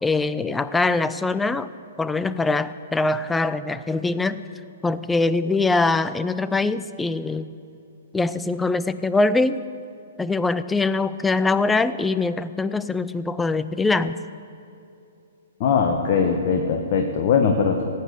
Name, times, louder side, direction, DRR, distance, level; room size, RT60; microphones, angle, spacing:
voice 1, 0.0-1.7 2.0-4.4 4.8-7.5 8.1-9.6 10.2-14.2, left 3 dB, 10° left, 14 dB, 0.4 m, -23 dB
voice 2, 15.6-17.8, left 6 dB, 40° left, 3 dB, 1.1 m, -20 dB
17.5 x 8.3 x 7.0 m, 2.7 s
figure-of-eight pair, 115°, 0 cm